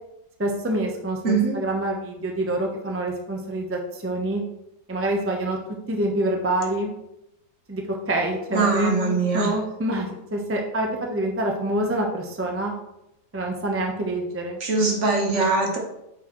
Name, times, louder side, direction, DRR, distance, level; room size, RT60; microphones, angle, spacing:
voice 1, 0.4-4.4 4.9-5.6 5.9-6.9 7.7-12.7 13.3-14.6 15.3-15.5, right 1 dB, 15° right, 1 dB, 0.4 m, -26 dB
voice 2, 1.2-1.6 8.5-9.5 14.6-15.8, right 3 dB, 45° right, 0 dB, 1.4 m, -22 dB
9.0 x 4.9 x 3.0 m, 0.85 s
omnidirectional pair, 1.9 m